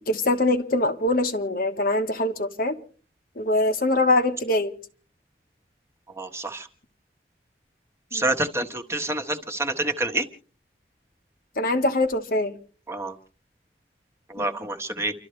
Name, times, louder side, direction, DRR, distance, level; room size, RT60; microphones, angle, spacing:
voice 1, 0.1-2.8 3.4-4.7 8.1-8.2 11.6-12.5 14.4-14.5, left 2 dB, 50° left, 1.2 m, -23 dB
voice 2, 6.2-6.7 8.1-10.3 12.9-13.1 14.3-15.1, right 2 dB, 15° right, 1.3 m, -27 dB
30.0 x 12.5 x 3.2 m
head